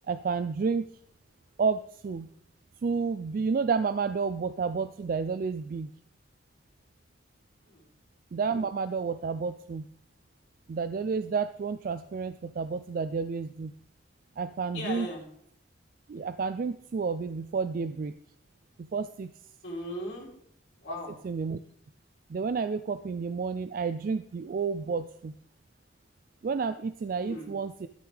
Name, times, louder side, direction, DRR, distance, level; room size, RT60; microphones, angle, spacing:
voice 1, 0.1-0.9 1.6-2.3 2.8-5.9 8.3-9.8 10.7-13.7 14.4-15.1 16.1-18.1 18.8-19.3 21.2-21.6 22.3-25.3 26.4-27.9, right 5 dB, 45° right, 12 dB, 0.3 m, -30 dB
voice 2, 14.7-15.2 19.6-20.3 20.8-21.1 27.2-27.5, left 1 dB, 70° left, -5 dB, 3.0 m, -37 dB
12.0 x 10.5 x 3.4 m, 0.68 s
head